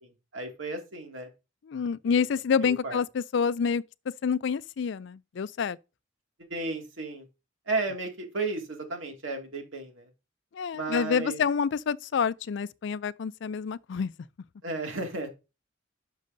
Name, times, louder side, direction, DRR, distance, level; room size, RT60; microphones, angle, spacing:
voice 1, 0.0-1.3 2.0-2.2 2.6-3.0 6.4-7.3 7.7-10.1 10.7-11.5 14.6-15.4, right 3 dB, 90° right, 2.2 m, -34 dB
voice 2, 1.7-3.8 4.2-5.8 10.5-14.1, left 6 dB, 65° left, 0.4 m, -28 dB
10.5 x 6.4 x 2.6 m
head